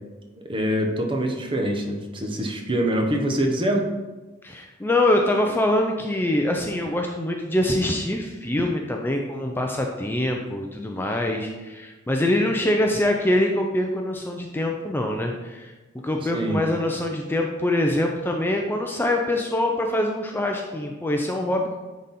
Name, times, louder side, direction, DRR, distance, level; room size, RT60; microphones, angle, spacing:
voice 1, 0.5-3.9 16.3-16.6, right 1 dB, 25° right, 2 dB, 0.9 m, -24 dB
voice 2, 4.4-15.7 16.0-21.7, left 1 dB, 10° left, 2 dB, 0.5 m, -24 dB
9.7 x 4.1 x 4.2 m, 1.2 s
head